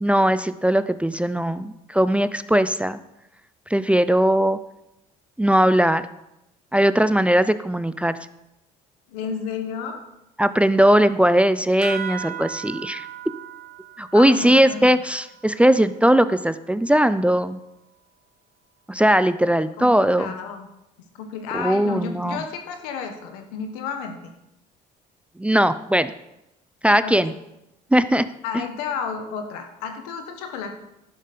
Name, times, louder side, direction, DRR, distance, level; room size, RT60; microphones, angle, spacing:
voice 1, 0.0-3.0 3.7-4.6 5.4-6.1 6.7-8.2 10.4-13.1 14.0-17.6 18.9-20.3 21.5-22.4 25.4-26.1 26.8-27.3 27.9-28.3, right 1 dB, 5° right, 13 dB, 0.5 m, -19 dB
voice 2, 9.1-10.0 14.1-15.0 19.8-20.7 21.1-24.3 27.0-27.3 28.4-30.7, left 6 dB, 90° left, 6 dB, 1.3 m, -32 dB
sound 1, 11.8-16.8, right 9 dB, 65° right, 1.3 m, -38 dB
11.5 x 6.6 x 5.1 m, 0.88 s
supercardioid pair, 70°, 19 cm